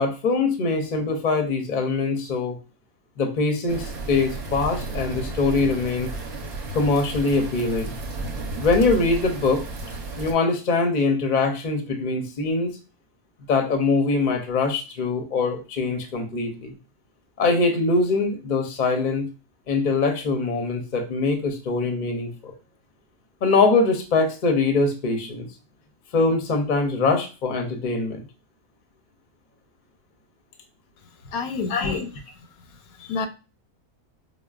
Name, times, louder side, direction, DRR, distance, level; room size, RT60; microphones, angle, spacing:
voice 1, 0.0-2.6 3.2-6.1 6.7-7.9 8.6-9.6 10.2-12.7 13.5-16.7 17.4-19.3 19.7-22.3 23.4-25.5 26.1-28.2 31.7-32.0, left 3 dB, 45° left, 0.6 m, -23 dB
sound 1, 3.7-10.3, right 2 dB, 50° right, 0.9 m, -33 dB
voice 2, 31.3-32.1 33.0-33.3, left 5 dB, 75° left, 1.0 m, -29 dB
4.9 x 2.0 x 2.4 m
omnidirectional pair, 1.6 m